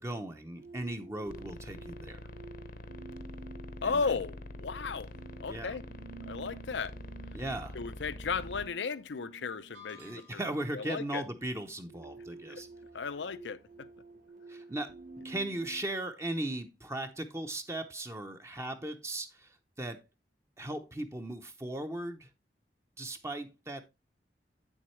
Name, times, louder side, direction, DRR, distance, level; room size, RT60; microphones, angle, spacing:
voice 1, 0.0-2.2 3.8-4.1 5.5-5.8 7.3-7.8 10.0-12.7 14.5-14.9 15.2-20.0 20.6-22.3 23.0-23.8, right 1 dB, 15° right, 0.6 m, -38 dB
sound 1, 0.6-15.8, right 4 dB, 50° right, 1.5 m, -51 dB
sound 2, 1.3-8.7, left 1 dB, 50° left, 0.8 m, -45 dB
voice 2, 3.8-5.1 5.4-5.8 6.3-6.9 7.7-10.4 10.7-11.2 12.5-12.6 12.9-13.9, left 5 dB, 90° left, 0.6 m, -35 dB
sound 3, 9.7-10.7, left 6 dB, 85° right, 2.2 m, -53 dB
8.6 x 7.2 x 3.1 m
head